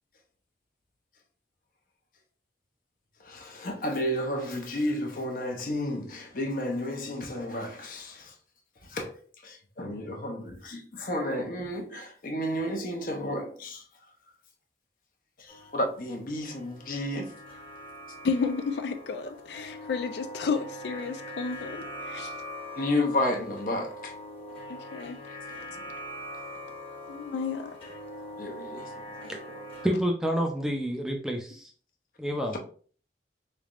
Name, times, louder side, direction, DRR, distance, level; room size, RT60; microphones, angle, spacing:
voice 1, 3.2-8.3 8.9-9.1 9.4-13.8 15.4-17.3 22.8-24.1 28.4-28.9 29.2-29.4, left 1 dB, 50° left, 0.7 m, -32 dB
sound 1, 15.5-29.9, equal, 30° left, 1.1 m, -42 dB
voice 2, 18.2-22.3 24.7-25.2 27.1-27.7, left 5 dB, 75° left, 0.4 m, -32 dB
voice 3, 29.8-31.7 32.2-32.5, equal, 5° right, 0.5 m, -28 dB
4.0 x 3.3 x 2.4 m
head